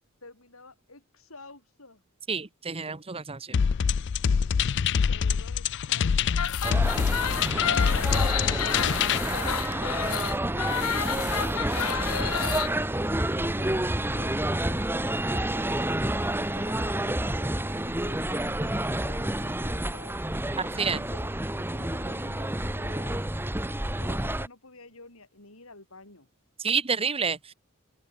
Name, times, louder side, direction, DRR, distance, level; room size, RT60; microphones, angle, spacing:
voice 1, 0.2-2.0 5.0-12.9 16.5-20.2 20.9-23.2 23.7-26.3, left 2 dB, 70° left, 7.5 m, -50 dB
voice 2, 2.3-3.6 20.6-21.0 26.6-27.5, right 5 dB, 25° right, 1.2 m, -29 dB
sound 1, 3.5-9.2, left 6 dB, 55° left, 0.4 m, -25 dB
sound 2, 6.3-12.7, left 8 dB, 90° left, 1.1 m, -30 dB
sound 3, 6.6-24.5, right 1 dB, 10° right, 1.6 m, -29 dB
open air
head